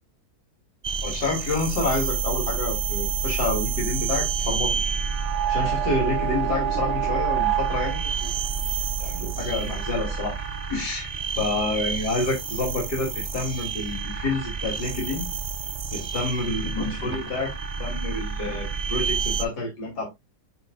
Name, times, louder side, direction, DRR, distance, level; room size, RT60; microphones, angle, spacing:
sound 1, 0.8-19.4, right 6 dB, 55° right, 0.4 m, -28 dB
voice 1, 1.0-4.7 5.5-8.3 9.0-10.3 10.7-11.1 11.3-15.3 15.9-17.5 17.8-20.1, left 2 dB, 80° left, -2 dB, 3.5 m, -28 dB
9.7 x 4.6 x 2.4 m, 0.20 s
omnidirectional pair, 1.8 m